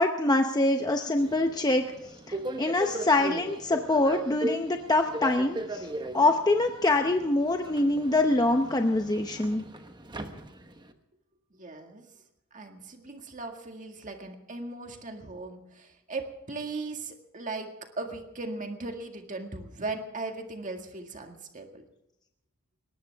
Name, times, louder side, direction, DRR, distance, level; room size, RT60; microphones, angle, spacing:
voice 1, 0.0-5.9 6.1-9.6, left 2 dB, 20° left, 4 dB, 0.8 m, -25 dB
Subway metro underground, 1.2-10.9, right 1 dB, 20° right, 1.1 m, -38 dB
voice 2, 11.6-12.1 12.5-21.8, right 3 dB, 35° right, 4 dB, 1.9 m, -38 dB
21.0 x 19.0 x 3.5 m, 0.84 s
head